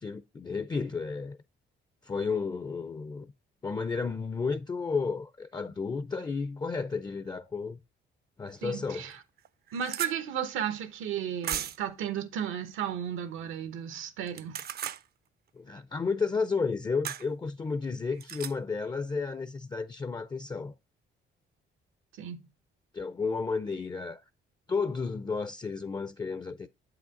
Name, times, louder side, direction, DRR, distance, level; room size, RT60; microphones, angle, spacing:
voice 1, 0.0-1.4 2.0-3.3 3.6-7.8 8.4-9.1 15.5-20.7 22.9-24.2 24.7-26.7, left 4 dB, 20° left, 0.4 m, -32 dB
sound 1, 8.5-8.6 9.1-9.2 9.4-10.1 11.4-11.9 14.3-15.0 17.0-17.2 18.2-18.5, right 9 dB, 50° right, 0.5 m, -36 dB
voice 2, 8.6-9.2 9.7-14.6 22.2-22.4, right 9 dB, 85° right, 1.0 m, -34 dB
7.8 x 4.9 x 3.6 m
cardioid pair, 90°, 20 cm